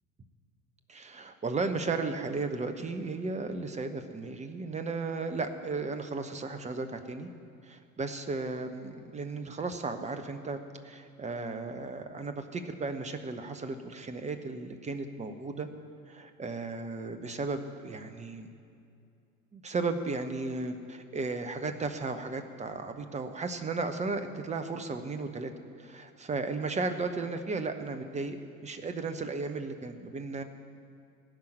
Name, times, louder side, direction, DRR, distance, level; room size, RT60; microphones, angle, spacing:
voice 1, 0.9-7.3 7.6-15.7 16.1-18.5 19.5-25.5 25.8-28.4 28.6-30.4, right 3 dB, 15° right, 8 dB, 0.9 m, -35 dB
16.5 x 5.7 x 9.0 m, 2.5 s
figure-of-eight pair, 65°, 43 cm